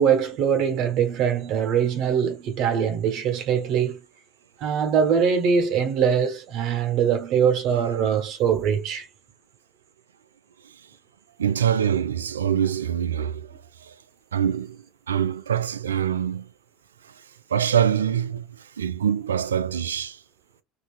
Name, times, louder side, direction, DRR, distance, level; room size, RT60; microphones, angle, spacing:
voice 1, 0.0-4.0 4.6-9.1, right 7 dB, 55° right, 1.2 m, -22 dB
voice 2, 11.4-13.5 13.8-13.9 14.3-16.5 17.0-17.1 17.5-20.2, right 9 dB, 80° right, 0.3 m, -25 dB
4.0 x 2.3 x 2.4 m
figure-of-eight pair, 70°, 0 cm